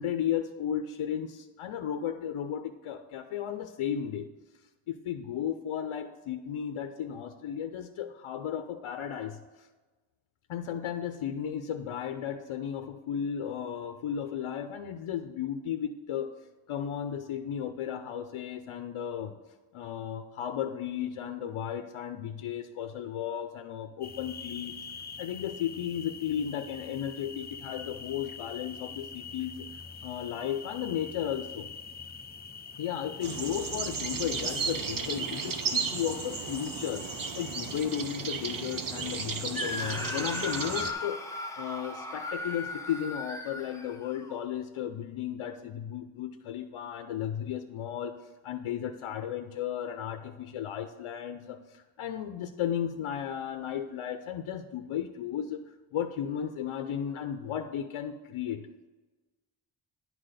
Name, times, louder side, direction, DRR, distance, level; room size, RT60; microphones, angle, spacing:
voice 1, 0.0-4.3 4.9-9.7 10.5-16.3 16.7-19.4 19.7-24.8 25.2-29.7 30.0-31.7 32.8-48.2 48.4-58.7, left 9 dB, 85° left, 7 dB, 0.6 m, -34 dB
sound 1, 24.0-37.8, left 5 dB, 25° left, 0.3 m, -44 dB
sound 2, 33.2-40.9, right 5 dB, 45° right, 0.7 m, -34 dB
Screaming, 39.5-44.4, left 2 dB, 5° left, 0.8 m, -37 dB
11.0 x 3.9 x 6.6 m, 1.3 s
wide cardioid pair, 160°, 48 cm